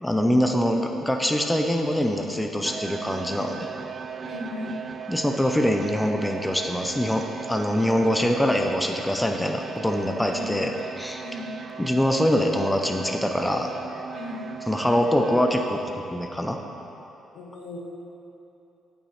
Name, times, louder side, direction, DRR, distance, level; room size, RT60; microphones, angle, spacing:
voice 1, 0.0-3.7 5.1-10.7 11.0-11.2 11.8-13.7 14.7-16.6, equal, 5° left, 3 dB, 0.6 m, -24 dB
sound 1, 2.6-15.7, right 6 dB, 40° right, 0.4 m, -38 dB
voice 2, 4.2-4.8 10.3-10.6 11.2-11.5 14.1-14.5 17.3-17.8, left 2 dB, 80° left, -2 dB, 1.3 m, -36 dB
9.0 x 9.0 x 3.3 m, 2.9 s
cardioid pair, 85°, 0 cm